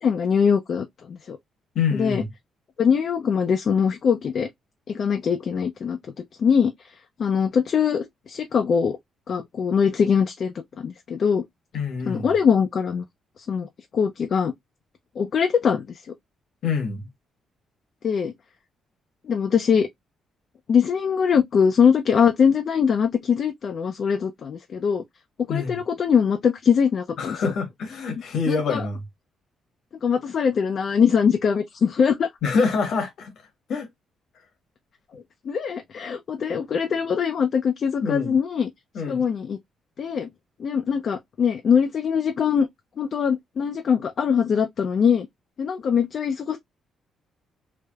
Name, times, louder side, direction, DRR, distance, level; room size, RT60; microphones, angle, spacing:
voice 1, 0.0-1.4 1.9-2.2 2.8-4.5 4.9-6.0 6.4-6.9 7.2-9.0 9.3-11.4 12.0-13.0 13.4-14.5 15.2-16.0 18.0-18.3 19.2-19.9 20.7-25.0 25.5-27.5 28.5-28.8 30.0-32.3 35.1-38.7 39.1-39.6 40.0-40.3 40.6-42.7 43.0-45.3 45.6-46.6, left 6 dB, 55° left, 0.4 m, -22 dB
voice 2, 1.7-2.3 11.7-12.3 16.6-17.1 25.5-25.8 27.2-29.0 32.4-33.3 33.7-33.9 38.0-38.4 38.9-39.2, left 5 dB, 70° left, 1.1 m, -26 dB
3.2 x 2.1 x 2.2 m
cardioid pair, 90°, 0 cm